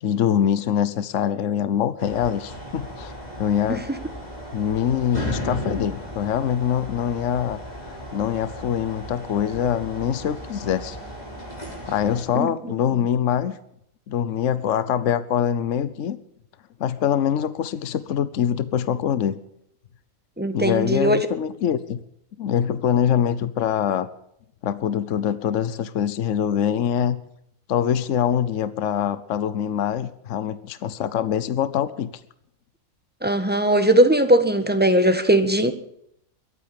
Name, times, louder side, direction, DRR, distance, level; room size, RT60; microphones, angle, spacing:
voice 1, 0.0-3.1 3.4-3.8 4.5-7.6 8.1-11.0 11.9-13.6 14.1-16.2 16.8-19.4 20.5-22.0 22.4-24.1 24.6-27.2 27.7-32.1, left 9 dB, 65° left, 14 dB, 1.2 m, -24 dB
sound 1, 2.0-12.2, equal, 30° left, 3.7 m, -35 dB
voice 2, 20.4-21.3 33.2-35.7, right 1 dB, 10° right, 9 dB, 1.2 m, -19 dB
22.5 x 9.1 x 6.7 m, 0.74 s
omnidirectional pair, 1.5 m